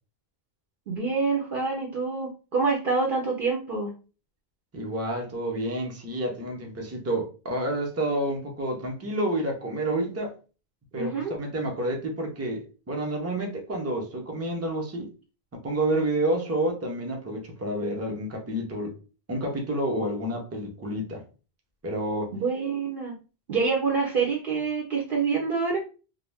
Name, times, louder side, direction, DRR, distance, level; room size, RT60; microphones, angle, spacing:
voice 1, 0.9-3.9 10.9-11.4 22.3-23.2 23.5-25.8, right 4 dB, 60° right, 0.8 m, -26 dB
voice 2, 4.7-10.3 10.9-15.1 15.5-18.9 19.3-21.2 21.8-22.3, right 1 dB, 20° right, 0.5 m, -29 dB
2.4 x 2.1 x 3.3 m
omnidirectional pair, 1.1 m